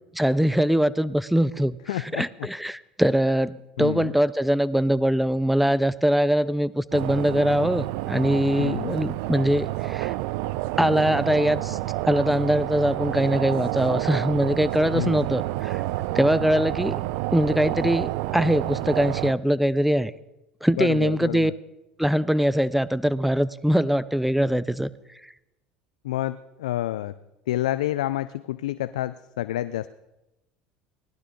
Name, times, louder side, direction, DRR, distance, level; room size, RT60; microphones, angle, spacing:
voice 1, 0.1-1.8 2.1-10.1 10.8-11.8 12.0-15.8 16.1-17.0 17.3-20.1 20.6-21.5 22.0-24.9, equal, 5° right, 18 dB, 0.5 m, -22 dB
voice 2, 1.9-2.5 3.8-4.1 8.5-9.0 14.9-15.3 20.8-21.5 26.0-27.1 27.5-29.9, left 14 dB, 85° left, 15 dB, 0.3 m, -29 dB
sound 1, 6.9-19.3, right 17 dB, 70° right, 0.4 m, -29 dB
17.5 x 12.0 x 3.8 m, 0.96 s
hypercardioid pair, 80°, 4 cm